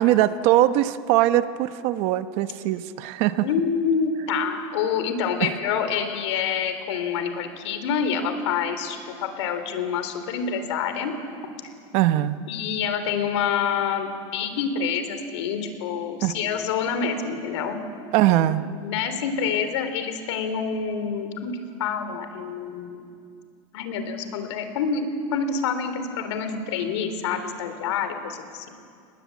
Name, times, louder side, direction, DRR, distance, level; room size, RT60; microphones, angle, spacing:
voice 1, 0.0-3.5 5.4-5.5 11.9-12.4 16.2-16.3 18.1-18.7, right 14 dB, 45° right, 12 dB, 0.9 m, -21 dB
voice 2, 3.4-11.1 12.5-17.8 18.4-21.5 21.8-23.0 23.7-28.7, left 6 dB, 80° left, 8 dB, 3.6 m, -27 dB
29.5 x 20.0 x 8.5 m, 2.3 s
supercardioid pair, 170°, 15 cm